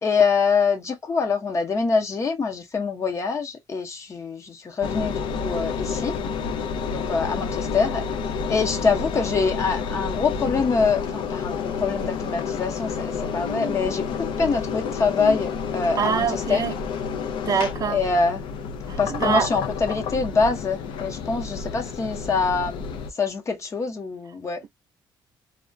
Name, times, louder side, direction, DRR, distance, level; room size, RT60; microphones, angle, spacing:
voice 1, 0.0-6.1 6.9-8.1 8.5-14.1 14.4-16.2 16.5-16.6 17.9-18.4 18.8-22.9 23.2-24.6, left 4 dB, 35° left, 0.8 m, -24 dB
Engine, 4.8-23.1, left 6 dB, 80° left, 0.4 m, -29 dB
voice 2, 16.0-16.7 17.4-18.0 18.9-19.5, right 7 dB, 45° right, 0.4 m, -24 dB
2.3 x 2.1 x 2.5 m
cardioid pair, 115°, 8 cm